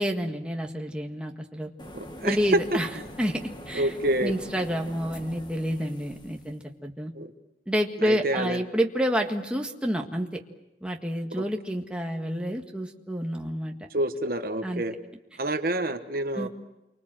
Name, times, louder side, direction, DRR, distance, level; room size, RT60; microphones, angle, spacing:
voice 1, 0.0-1.7 2.2-2.9 3.2-3.4 3.7-3.9 4.2-7.1 7.7-10.4 10.8-13.8 14.6-14.8 16.3-16.5, equal, 5° right, 1 dB, 1.7 m, -29 dB
sound 1, 1.8-6.6, equal, 25° left, 1.9 m, -43 dB
voice 2, 1.9-2.4 3.7-4.3 7.1-7.3 8.0-8.6 11.3-11.4 13.9-14.9 15.4-16.5, right 1 dB, 50° right, 7 dB, 1.2 m, -28 dB
28.0 x 25.0 x 7.7 m, 0.96 s
head